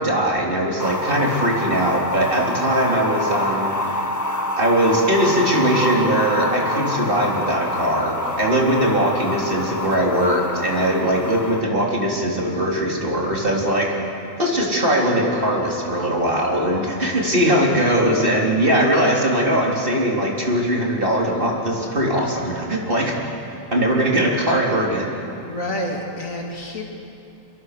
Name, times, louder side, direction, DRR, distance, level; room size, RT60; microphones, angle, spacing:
voice 1, 0.0-4.0 4.6-13.9 14.4-23.1 23.7-25.1, right 1 dB, 40° right, -2 dB, 3.7 m, -20 dB
sound 1, 0.8-11.6, left 2 dB, 15° left, 0.8 m, -27 dB
voice 2, 25.4-26.8, left 1 dB, 75° left, 0 dB, 3.3 m, -28 dB
26.0 x 23.0 x 6.7 m, 2.9 s
omnidirectional pair, 1.4 m